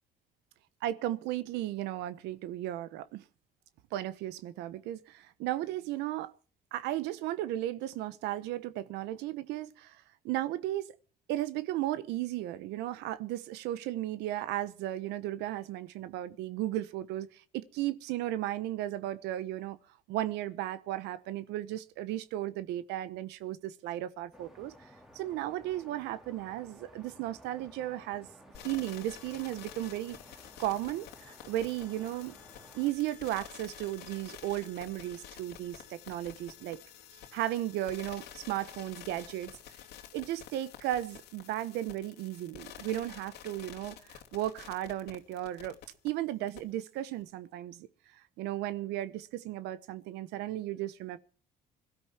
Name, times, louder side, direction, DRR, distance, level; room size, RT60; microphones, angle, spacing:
voice 1, 0.8-3.2 3.9-6.3 6.7-10.0 10.2-10.9 11.3-19.8 20.1-24.7 25.1-28.3 28.6-30.2 30.6-32.4 32.7-36.8 37.3-39.5 40.1-45.8 46.0-47.9 48.4-51.2, right 14 dB, 90° right, 1.0 m, -35 dB
sound 1, 24.3-32.9, equal, ahead, 2.6 m, -56 dB
sound 2, 28.5-46.1 46.5-46.6, left 11 dB, 80° left, 2.6 m, -50 dB
22.0 x 13.0 x 4.5 m
cardioid pair, 110°, 17 cm